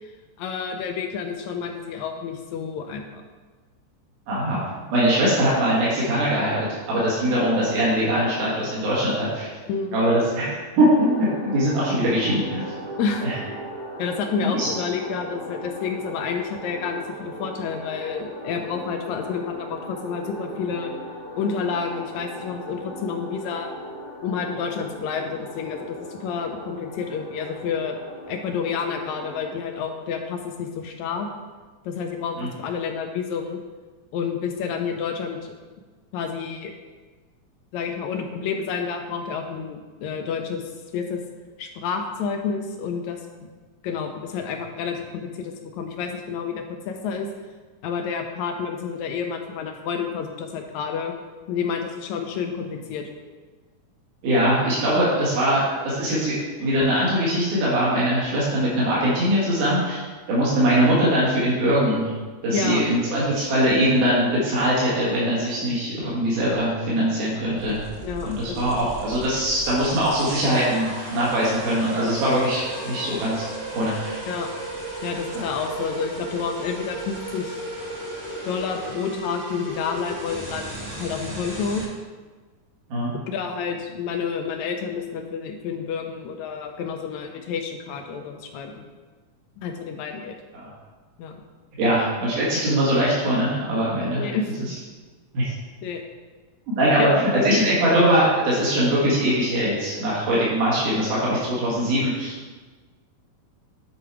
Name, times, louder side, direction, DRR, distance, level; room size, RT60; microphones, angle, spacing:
voice 1, 0.4-3.2 9.7-10.0 13.0-13.3 14.0-20.9 21.4-23.7 24.2-28.0 28.3-31.3 31.9-33.6 34.1-35.5 36.1-36.7 37.7-40.6 40.9-41.2 41.6-43.5 43.8-47.3 47.8-51.1 51.5-53.1 62.5-62.8 68.0-68.7 74.3-74.5 75.0-77.6 78.4-81.8 83.3-88.8 89.6-90.4 91.2-91.4 94.1-94.5 95.8-96.0, left 6 dB, 80° left, 4 dB, 1.8 m, -29 dB
voice 2, 4.3-4.6 4.9-9.5 9.9-12.6 13.2-13.4 14.4-14.7 32.4-32.5 54.2-62.1 62.4-67.9 68.2-73.4 73.7-74.2 82.9-83.1 90.5-90.7 91.8-94.3 95.3-95.5 96.7-102.4, equal, 80° right, -7 dB, 3.3 m, -22 dB
sound 1, 10.9-29.5, equal, 60° left, 1.0 m, -38 dB
sound 2, 67.6-81.8, right 1 dB, 50° right, 0.7 m, -35 dB
9.4 x 4.5 x 4.8 m, 1.4 s
omnidirectional pair, 3.6 m